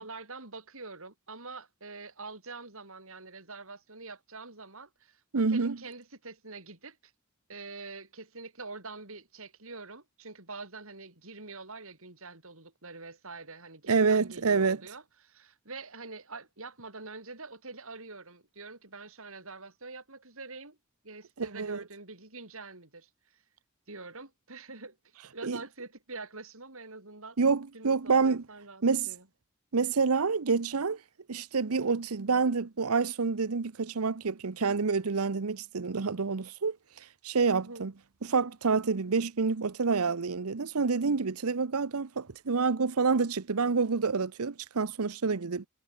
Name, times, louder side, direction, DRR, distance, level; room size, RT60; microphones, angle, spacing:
voice 1, 0.0-7.0 7.5-20.8 21.0-23.1 23.9-25.0 25.3-27.4 27.7-29.2 37.5-37.8, right 3 dB, 70° right, 6.7 m, -45 dB
voice 2, 5.3-5.8 13.9-14.8 21.4-21.8 25.4-25.6 27.4-28.4 28.8-29.1 29.7-31.0 31.3-36.8 37.2-37.9 38.2-45.7, right 4 dB, 85° right, 0.8 m, -28 dB
head